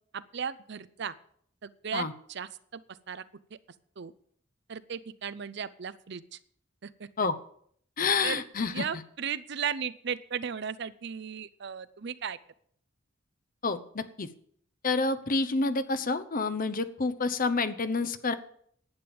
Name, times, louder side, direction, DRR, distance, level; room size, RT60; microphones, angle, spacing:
voice 1, 0.1-1.1 1.6-2.8 3.1-3.2 4.0-4.1 4.7-6.4 6.8-7.3 8.2-8.4 8.7-12.4, right 7 dB, 60° right, 15 dB, 0.6 m, -36 dB
voice 2, 8.0-8.8 13.6-14.3 14.8-18.3, left 4 dB, 45° left, 12 dB, 0.8 m, -28 dB
11.0 x 8.9 x 7.0 m, 0.64 s
head